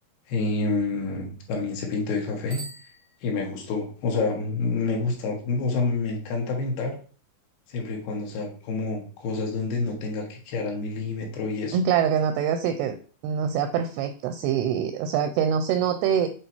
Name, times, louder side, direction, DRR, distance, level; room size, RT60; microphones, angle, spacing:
voice 1, 0.3-2.6 3.2-7.0 7.7-11.8, left 3 dB, 70° left, 1 dB, 3.1 m, -28 dB
Bicycle bell, 2.4-3.8, right 4 dB, 55° right, 1.0 m, -44 dB
voice 2, 11.7-13.0 13.2-16.3, right 8 dB, 85° right, 8 dB, 2.4 m, -24 dB
8.1 x 2.8 x 4.4 m, 0.40 s
omnidirectional pair, 5.1 m